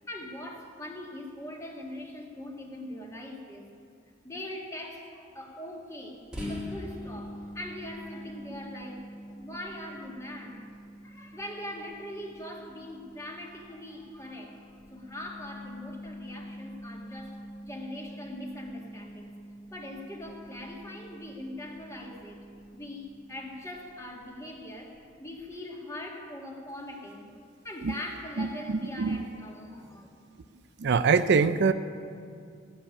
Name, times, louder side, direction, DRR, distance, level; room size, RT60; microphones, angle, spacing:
voice 1, 0.1-3.7 4.2-9.0 9.4-10.7 11.0-14.6 14.9-19.3 19.7-22.4 22.7-30.1, left 1 dB, 15° left, 0 dB, 1.8 m, -41 dB
sound 1, 6.3-23.8, equal, 5° right, 1.9 m, -45 dB
voice 2, 28.4-29.2 30.8-31.7, right 5 dB, 60° right, 11 dB, 0.4 m, -24 dB
16.0 x 7.0 x 9.9 m, 2.3 s
head